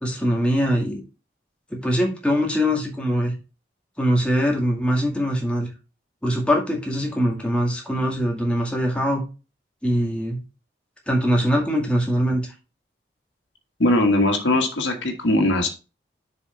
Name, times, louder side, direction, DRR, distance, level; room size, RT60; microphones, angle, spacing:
voice 1, 0.0-1.0 1.7-3.3 4.0-5.7 6.2-9.2 9.8-10.4 11.1-12.5, equal, 5° left, -1 dB, 2.2 m, -22 dB
voice 2, 13.8-15.7, left 1 dB, 90° left, 2 dB, 1.7 m, -20 dB
7.0 x 5.4 x 4.5 m, 0.30 s
head